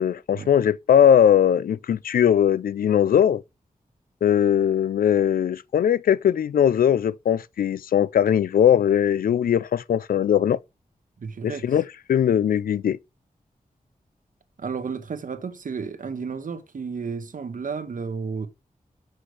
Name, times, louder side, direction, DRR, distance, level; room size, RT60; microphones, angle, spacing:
voice 1, 0.0-3.4 4.2-10.6 11.4-13.0, left 9 dB, 90° left, 0.4 m, -20 dB
voice 2, 11.2-11.7 14.6-18.5, right 5 dB, 70° right, 1.3 m, -32 dB
6.5 x 6.2 x 4.7 m
wide cardioid pair, 75°, 14 cm